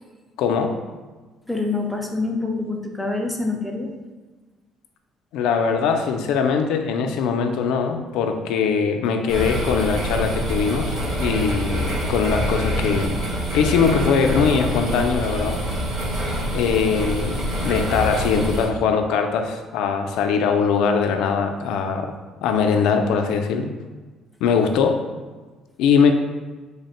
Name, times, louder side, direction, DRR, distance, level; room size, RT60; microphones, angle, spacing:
voice 1, 0.4-0.7 5.3-13.2 13.5-15.6 16.5-22.1 22.4-23.7 24.4-25.0 25.8-26.1, left 6 dB, 80° left, 5 dB, 0.3 m, -21 dB
voice 2, 1.5-3.9, left 3 dB, ahead, 1 dB, 0.3 m, -26 dB
sound 1, 9.3-18.6, equal, 55° right, 1.3 m, -25 dB
3.2 x 2.1 x 4.1 m, 1.3 s
cardioid pair, 160°, 0 cm